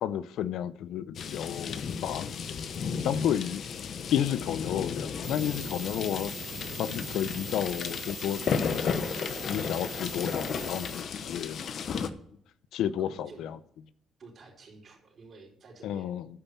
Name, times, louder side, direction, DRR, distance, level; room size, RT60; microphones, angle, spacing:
voice 1, 0.0-2.5 3.0-3.6 4.1-6.3 6.8-8.9 9.5-11.6 12.7-13.6 15.8-16.3, left 10 dB, 85° left, 16 dB, 0.5 m, -31 dB
sound 1, 1.1-12.1, left 6 dB, 60° left, 0.8 m, -34 dB
voice 2, 3.0-3.6 13.0-13.5 14.2-16.2, right 4 dB, 50° right, -1 dB, 4.4 m, -51 dB
sound 2, 5.2-11.0, right 9 dB, 70° right, 0.6 m, -43 dB
11.0 x 5.5 x 7.0 m, 0.66 s
cardioid pair, 90°, 0 cm